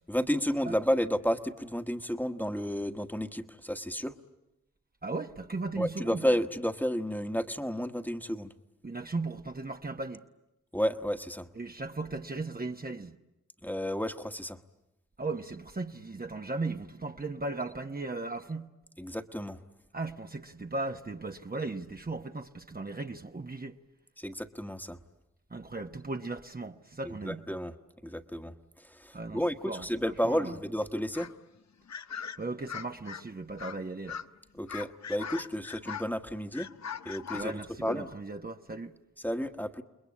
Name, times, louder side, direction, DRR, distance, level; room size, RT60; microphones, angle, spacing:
voice 1, 0.1-4.1 5.8-8.5 10.7-11.5 13.6-14.6 19.0-19.6 24.2-25.0 27.0-27.7 28.0-28.5 28.9-31.3 34.5-36.7 37.0-37.5 37.8-38.1 39.2-39.8, equal, 5° left, 1.5 m, -31 dB
voice 2, 5.0-6.2 8.8-10.2 11.5-13.2 15.2-18.7 19.9-23.8 25.5-27.4 29.1-29.9 30.2-30.6 32.4-34.2 37.3-38.9, right 3 dB, 30° right, 1.2 m, -37 dB
sound 1, 31.1-31.4 31.9-33.2 33.6-33.8 34.1-34.3 34.7-36.1 36.5-38.1, left 7 dB, 60° left, 0.9 m, -40 dB
29.5 x 21.0 x 8.7 m
supercardioid pair, 40°, 31 cm